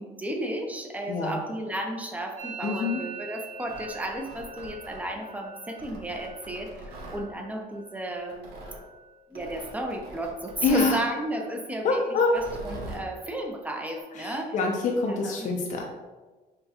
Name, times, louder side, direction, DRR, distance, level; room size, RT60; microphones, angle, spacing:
voice 1, 0.0-8.6 9.3-12.0 12.3-14.5 15.1-15.5, right 1 dB, 10° right, 2 dB, 0.6 m, -33 dB
voice 2, 1.1-1.4 2.6-3.0 10.6-11.0 11.8-12.4 14.2-15.8, left 4 dB, 50° left, 1 dB, 0.5 m, -25 dB
Musical instrument, 2.4-10.0 10.3-10.8 11.1-11.7 12.0-14.0, right 4 dB, 50° right, 0.7 m, -45 dB
Tearing, 3.5-5.3 5.8-7.2 8.3-8.8 9.3-10.9 12.2-13.1, right 1 dB, 80° right, 1.0 m, -43 dB
5.2 x 2.3 x 2.9 m, 1.2 s
cardioid pair, 110°, 17 cm